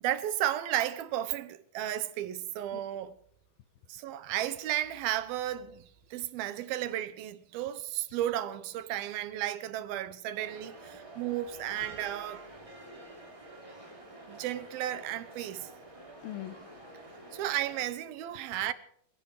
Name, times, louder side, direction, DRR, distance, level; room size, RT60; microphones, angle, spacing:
voice 1, 0.0-3.1 3.9-12.5 14.3-15.7 17.3-18.7, right 12 dB, 90° right, 2.9 m, -33 dB
sound 1, 10.3-17.8, right 1 dB, 10° right, 3.1 m, -49 dB
voice 2, 16.1-17.7 18.3-18.5, left 14 dB, 80° left, 2.8 m, -46 dB
26.0 x 17.0 x 3.3 m
omnidirectional pair, 4.2 m